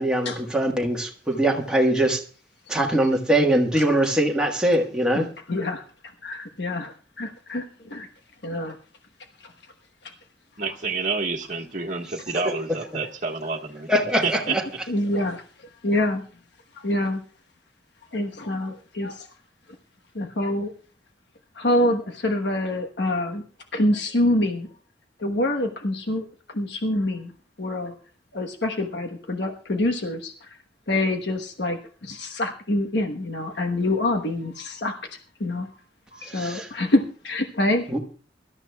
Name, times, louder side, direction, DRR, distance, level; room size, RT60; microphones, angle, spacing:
voice 1, 0.0-2.2 2.7-5.3 13.9-14.6 36.2-36.7 37.9-38.0, right 1 dB, 5° right, 1.4 m, -22 dB
voice 2, 5.1-5.8 6.2-8.1 8.4-8.8 9.4-9.5 14.9-15.4 15.8-16.2 16.8-17.2 18.1-19.3 20.1-20.7 21.6-23.4 23.7-24.7 25.2-26.3 26.5-27.3 27.6-27.9 28.3-30.5 30.9-35.7 36.1-37.9, left 1 dB, 70° left, 1.2 m, -26 dB
voice 3, 10.6-13.9 14.2-14.5, right 4 dB, 45° right, 1.5 m, -28 dB
23.5 x 12.5 x 2.3 m
head